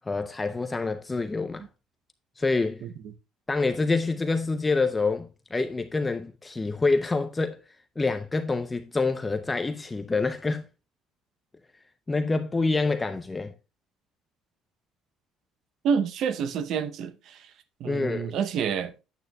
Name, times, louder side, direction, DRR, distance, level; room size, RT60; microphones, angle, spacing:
voice 1, 0.1-1.6 2.4-2.8 3.5-7.6 8.0-10.7 12.1-13.5 17.8-18.3, left 3 dB, 20° left, 0.6 m, -27 dB
voice 2, 15.8-17.5 17.8-18.9, right 7 dB, 60° right, 0.7 m, -28 dB
9.1 x 8.4 x 2.2 m
cardioid pair, 110°, 0 cm